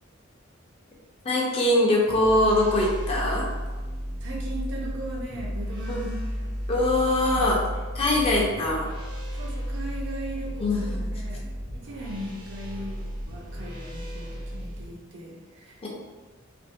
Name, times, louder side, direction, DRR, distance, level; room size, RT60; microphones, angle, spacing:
voice 1, 1.2-3.5 5.9-6.0 6.7-7.6 7.9-8.9 10.6-11.1 15.8-15.9, left 1 dB, 30° left, -4 dB, 0.4 m, -23 dB
sound 1, 2.0-14.8, equal, 85° right, 1.0 m, -33 dB
voice 2, 4.2-6.4 8.1-8.2 9.4-11.4 11.7-15.9, right 1 dB, 60° right, -2 dB, 0.5 m, -38 dB
2.5 x 2.0 x 2.5 m, 1.3 s
head